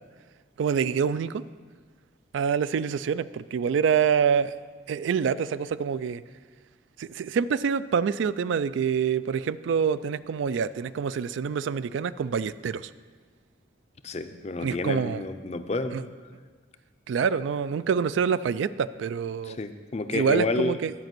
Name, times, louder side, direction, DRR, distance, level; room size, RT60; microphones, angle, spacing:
voice 1, 0.6-1.4 2.3-4.5 4.9-6.2 7.0-12.9 14.6-15.2 15.9-16.0 17.1-19.6 20.1-20.9, right 6 dB, 75° right, 16 dB, 0.3 m, -26 dB
voice 2, 14.0-16.0 19.4-20.8, left 2 dB, 35° left, 9 dB, 0.5 m, -29 dB
10.5 x 5.2 x 7.6 m, 1.5 s
head